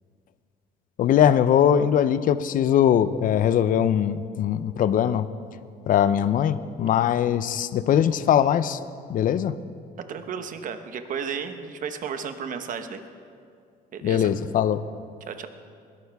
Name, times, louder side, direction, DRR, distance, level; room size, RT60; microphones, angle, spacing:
voice 1, 1.0-5.3 5.9-8.8 9.1-9.5 14.0-14.8, left 9 dB, 55° left, 14 dB, 0.6 m, -21 dB
voice 2, 10.1-13.0 13.9-14.3 15.3-15.5, right 6 dB, 50° right, 8 dB, 1.1 m, -33 dB
21.0 x 12.0 x 3.5 m, 2.3 s
cardioid pair, 110°, 17 cm